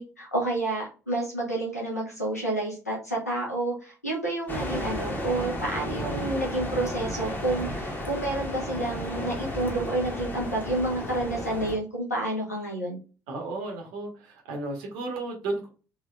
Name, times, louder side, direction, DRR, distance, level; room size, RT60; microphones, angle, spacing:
voice 1, 0.0-13.0, right 2 dB, 90° left, -4 dB, 1.1 m, -29 dB
sound 1, 4.5-11.8, left 1 dB, 20° left, 1.3 m, -33 dB
voice 2, 13.3-15.7, right 2 dB, 65° right, 1 dB, 1.2 m, -33 dB
3.4 x 3.3 x 2.3 m, 0.35 s
figure-of-eight pair, 50°, 8 cm